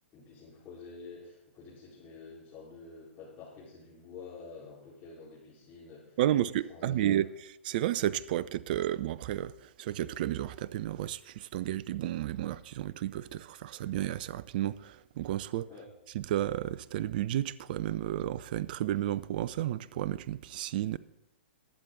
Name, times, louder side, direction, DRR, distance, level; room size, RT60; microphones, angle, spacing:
voice 1, 0.1-7.2 15.7-15.9, left 4 dB, 25° left, 4.5 m, -49 dB
voice 2, 6.2-7.3 7.6-15.7 16.1-21.0, right 12 dB, 45° right, 0.5 m, -32 dB
21.0 x 7.4 x 3.9 m
figure-of-eight pair, 115°, 7 cm